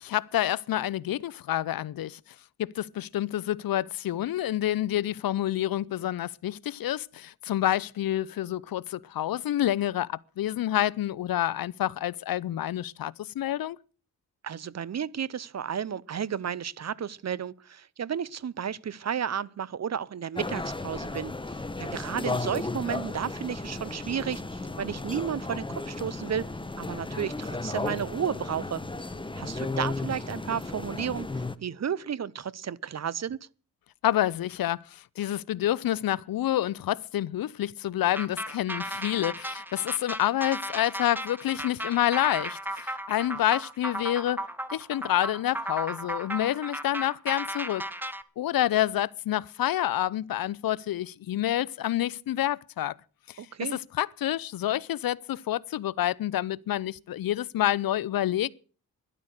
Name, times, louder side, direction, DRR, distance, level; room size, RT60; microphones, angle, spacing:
voice 1, 0.0-2.2 2.6-13.8 34.0-44.4 44.7-47.8 48.4-52.9 53.3-53.4 54.0-58.5, left 13 dB, 70° left, 0.6 m, -28 dB
voice 2, 14.4-21.3 21.8-26.5 26.8-28.8 29.4-33.4 53.4-53.8, right 8 dB, 45° right, 0.7 m, -32 dB
sound 1, 20.4-31.6, left 3 dB, 15° left, 1.0 m, -34 dB
sound 2, 38.1-48.2, right 1 dB, 5° right, 1.2 m, -35 dB
12.5 x 11.0 x 6.5 m
cardioid pair, 60°, 36 cm